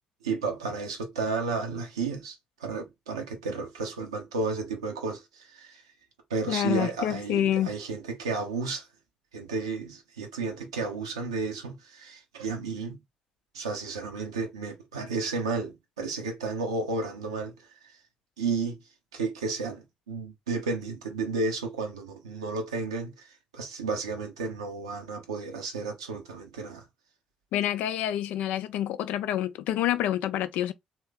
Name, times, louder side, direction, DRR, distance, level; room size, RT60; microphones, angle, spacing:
voice 1, 0.2-2.4 2.6-5.8 6.3-8.8 9.3-13.0 13.5-17.5 18.4-18.8 19.1-23.3 23.5-26.8, right 4 dB, 80° right, 0.7 m, -32 dB
voice 2, 6.5-7.7 27.5-30.7, left 11 dB, 60° left, 0.4 m, -27 dB
3.1 x 2.8 x 3.2 m
figure-of-eight pair, 45°, 3 cm